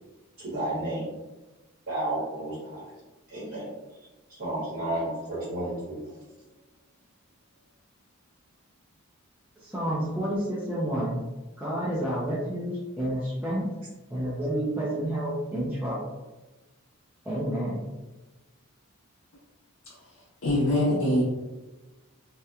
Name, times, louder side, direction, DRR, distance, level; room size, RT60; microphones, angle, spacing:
voice 1, 0.4-1.1 1.9-2.9 3.3-3.7 4.3-6.1, right 1 dB, 50° right, -10 dB, 1.1 m, -32 dB
voice 2, 9.6-11.2 11.6-13.7 14.1-16.1 17.2-17.9, right 1 dB, 5° right, -9 dB, 0.4 m, -29 dB
voice 3, 20.4-21.2, left 1 dB, 75° left, -5 dB, 0.5 m, -23 dB
2.8 x 2.2 x 2.3 m, 1.1 s
head